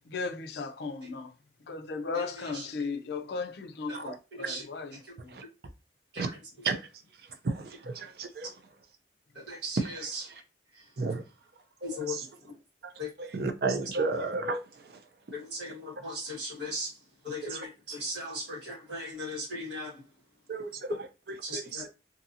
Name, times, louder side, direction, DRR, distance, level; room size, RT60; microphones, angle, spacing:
voice 1, 0.1-1.3 1.7-5.0, left 4 dB, 65° left, 0.4 m, -36 dB
voice 2, 2.1-2.7 3.9-4.0 4.4-4.6 6.1-6.2 9.5-9.8 10.1-10.2 11.8-12.2 13.0-13.1 15.3-16.9 17.2-19.9 21.4-21.8, left 1 dB, 75° right, 1.5 m, -37 dB
voice 3, 7.4-8.5 9.9-10.4 11.0-11.2 11.8-12.3 12.8-12.9 13.2-15.0 17.4-17.7 20.5-21.9, right 3 dB, 55° right, 0.5 m, -33 dB
2.7 x 2.6 x 2.6 m
head